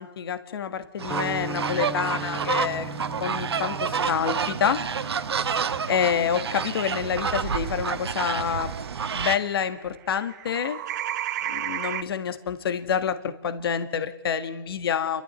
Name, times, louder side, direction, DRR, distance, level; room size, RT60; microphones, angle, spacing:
voice 1, 0.0-2.9 3.2-4.8 5.9-8.7 9.1-10.8 11.5-15.2, left 8 dB, 70° left, 9 dB, 1.7 m, -27 dB
sound 1, 1.0-9.4, right 6 dB, 90° right, 1.3 m, -29 dB
sound 2, 1.1-7.4, right 1 dB, 5° left, 0.7 m, -40 dB
sound 3, 6.1-9.9 10.1-12.0, right 12 dB, 45° right, 1.0 m, -35 dB
30.0 x 13.0 x 8.1 m, 1.0 s
hypercardioid pair, 155°, 13 cm